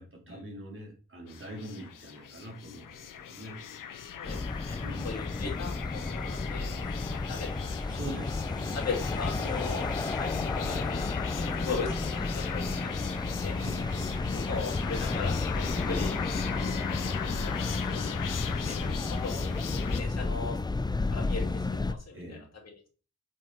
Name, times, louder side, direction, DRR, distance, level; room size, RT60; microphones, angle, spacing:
voice 1, 0.0-3.6 4.7-5.2 7.9-8.8 9.4-9.6 11.4-11.7 13.6-14.2 22.1-22.4, right 1 dB, 40° right, -1 dB, 2.8 m, -43 dB
sound 1, 1.3-20.0, left 8 dB, 85° left, 0.8 m, -39 dB
voice 2, 4.2-4.8 5.0-8.0 8.7-13.6 14.3-16.8 17.6-18.0 18.4-19.5 19.7-20.6 21.1-22.9, left 4 dB, 55° left, -1 dB, 2.9 m, -39 dB
sound 2, 4.2-21.9, left 3 dB, 15° left, 0.4 m, -32 dB
7.4 x 4.5 x 4.5 m, 0.38 s
cardioid pair, 85°, 31 cm